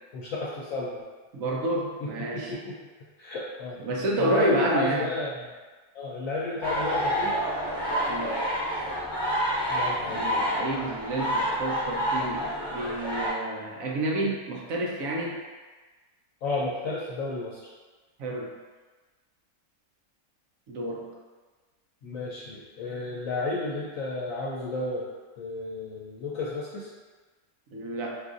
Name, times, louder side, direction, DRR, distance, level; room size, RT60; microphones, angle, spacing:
voice 1, 0.1-1.0 2.0-2.8 3.2-3.8 4.2-5.5 5.9-7.4 9.7-10.4 16.4-17.6 22.0-25.1 25.4-26.9, left 2 dB, 70° left, -6 dB, 1.0 m, -32 dB
voice 2, 1.3-2.5 3.8-5.1 8.1-8.4 10.0-15.4 18.2-18.5 20.7-21.1 27.7-28.1, right 1 dB, 70° right, -2 dB, 1.0 m, -29 dB
sound 1, 6.6-13.3, equal, 10° left, 1.3 m, -28 dB
4.7 x 2.5 x 2.4 m, 1.3 s
omnidirectional pair, 1.5 m